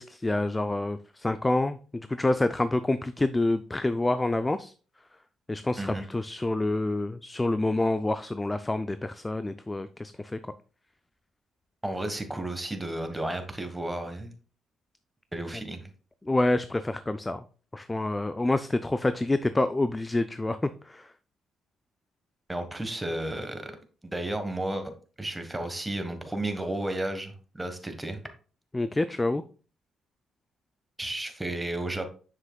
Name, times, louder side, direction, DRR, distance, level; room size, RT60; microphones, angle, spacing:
voice 1, 0.0-1.8 2.1-4.7 5.5-10.4 16.2-17.4 17.7-21.1 28.7-29.4, left 2 dB, 15° left, 11 dB, 0.3 m, -27 dB
voice 2, 11.8-14.3 15.3-15.9 22.5-23.7 24.0-24.9 25.2-28.2 31.0-32.1, right 1 dB, 10° right, 7 dB, 1.2 m, -33 dB
7.4 x 6.2 x 2.3 m, 0.38 s
cardioid pair, 90°, 0 cm